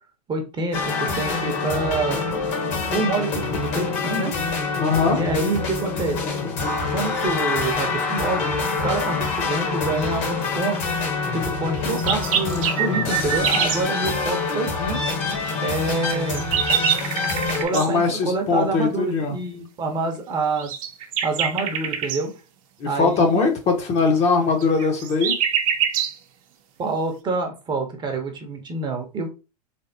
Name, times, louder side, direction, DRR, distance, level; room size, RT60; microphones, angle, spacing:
voice 1, 0.3-2.2 2.9-4.3 5.1-6.2 6.9-8.5 8.8-10.8 11.3-15.2 15.6-16.5 17.6-20.7 21.2-22.3 22.8-23.5 26.8-29.3, right 3 dB, 20° right, 3 dB, 0.9 m, -27 dB
sound 1, 0.7-17.6, left 4 dB, 55° left, 1.4 m, -26 dB
voice 2, 4.8-5.2 17.7-19.4 22.8-25.4, left 4 dB, 30° left, 4 dB, 0.9 m, -21 dB
sound 2, 11.8-13.8 15.9-17.9 20.6-22.2 24.6-26.2, right 8 dB, 60° right, 0.8 m, -24 dB
3.5 x 3.4 x 2.7 m, 0.30 s
hypercardioid pair, 100°, 21 cm